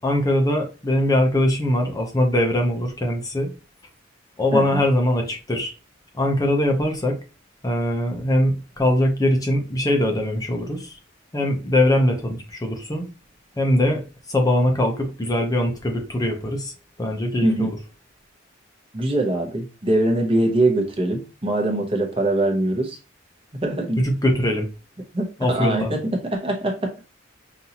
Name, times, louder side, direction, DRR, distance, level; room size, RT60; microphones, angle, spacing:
voice 1, 0.0-3.5 4.4-5.7 6.1-7.2 7.6-11.0 11.3-13.1 13.6-14.0 14.3-16.7 17.0-17.8 24.0-24.7 25.4-25.9, left 1 dB, 20° left, 0.7 m, -21 dB
voice 2, 4.5-4.8 17.4-17.7 18.9-23.0 23.6-24.0 25.1-26.9, right 1 dB, 30° right, 0.9 m, -22 dB
5.4 x 2.6 x 2.9 m
head